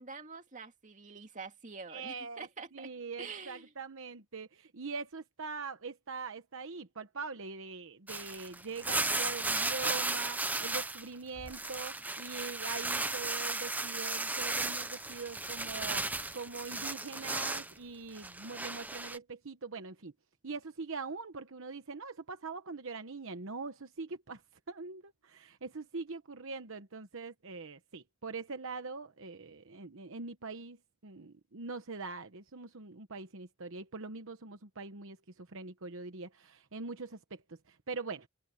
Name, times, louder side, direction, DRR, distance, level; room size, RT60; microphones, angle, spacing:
voice 1, 0.0-2.9 3.2-3.7, right 4 dB, 35° right, 2.4 m, -46 dB
voice 2, 1.9-2.5 2.7-16.1 16.3-20.1 20.4-24.4 24.7-30.8 31.0-38.3, right 4 dB, 65° right, 1.0 m, -43 dB
sound 1, 8.1-11.1 11.4-17.7 18.2-19.2, right 2 dB, 10° right, 0.8 m, -35 dB
head